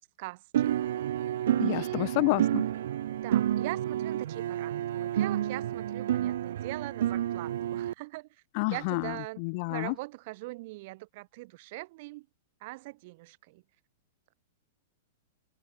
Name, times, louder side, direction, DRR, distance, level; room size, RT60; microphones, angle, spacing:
voice 1, 0.2-0.8 1.7-2.1 3.1-8.3 8.7-9.4 9.7-12.3 12.6-13.6, right 22 dB, 35° right, 1.7 m, -41 dB
sound 1, 0.5-7.9, right 11 dB, 55° right, 2.1 m, -30 dB
voice 2, 1.5-2.6 8.5-9.9, left 30 dB, 30° left, 1.0 m, -29 dB
supercardioid pair, 180°, 0 cm